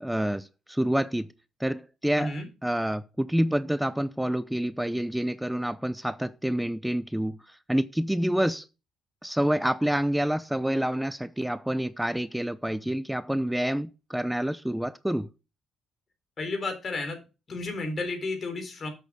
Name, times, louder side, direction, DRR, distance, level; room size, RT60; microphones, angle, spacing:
voice 1, 0.0-1.3 1.6-2.3 2.6-7.4 7.7-8.7 9.2-15.3, right 1 dB, 5° right, 0.6 m, -28 dB
voice 2, 2.2-2.5 16.4-17.2 17.5-18.9, left 3 dB, 40° left, 3.8 m, -32 dB
8.1 x 6.5 x 4.9 m
cardioid pair, 90°, 0 cm